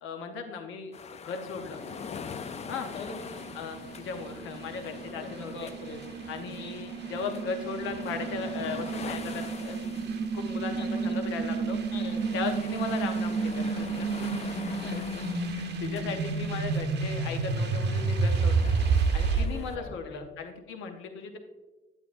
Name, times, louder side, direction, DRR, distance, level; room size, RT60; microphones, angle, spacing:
voice 1, 0.0-1.8 2.7-2.9 3.5-5.7 6.3-11.8 12.3-14.3 14.6-15.2 15.5-18.7 19.1-21.4, left 5 dB, 90° left, 5 dB, 0.8 m, -37 dB
sound 1, 0.9-19.8, left 6 dB, 35° left, 0.4 m, -44 dB
sound 2, 1.6-19.5, right 4 dB, 60° right, 0.7 m, -31 dB
voice 2, 2.9-3.3 5.1-6.0 6.4-6.7 10.7-11.1 11.9-12.5 14.7-15.3 15.7-15.8 19.3-20.2, left 4 dB, 65° left, 4 dB, 1.0 m, -43 dB
9.0 x 8.8 x 2.5 m, 1.1 s
cardioid pair, 90°, 20 cm